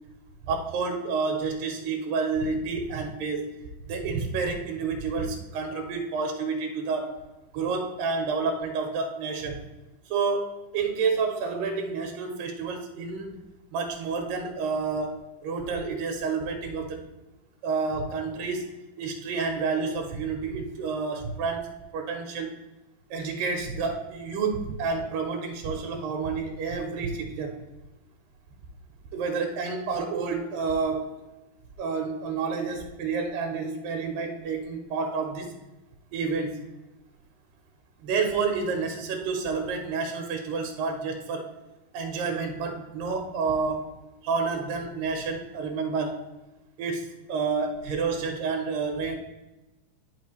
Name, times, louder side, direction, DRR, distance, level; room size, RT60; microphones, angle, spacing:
voice 1, 0.4-3.5 3.8-7.2 7.5-9.6 10.1-13.3 13.7-15.1 15.4-17.0 17.6-18.7 19.0-22.5 23.1-27.6 29.1-31.1 31.8-35.5 36.1-36.6 38.0-41.5 41.9-43.9 44.2-46.2 46.8-49.2, right 4 dB, 90° right, 3 dB, 2.6 m, -29 dB
10.0 x 5.3 x 3.2 m, 1.0 s
omnidirectional pair, 3.9 m